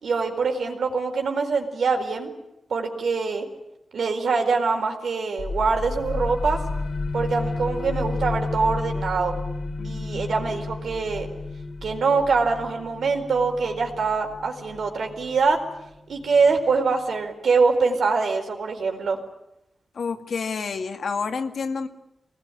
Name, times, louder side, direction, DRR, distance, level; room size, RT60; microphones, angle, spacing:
voice 1, 0.0-2.3 2.7-3.5 3.9-6.6 7.1-9.4 9.8-11.3 11.8-15.6 16.1-19.2, right 4 dB, 80° right, 4 dB, 4.4 m, -24 dB
sound 1, 5.4-16.8, left 3 dB, 85° left, 4.1 m, -32 dB
voice 2, 9.8-10.4 19.9-21.9, left 5 dB, 70° left, 7 dB, 2.1 m, -29 dB
26.0 x 20.0 x 10.0 m, 0.87 s
wide cardioid pair, 160°, 0 cm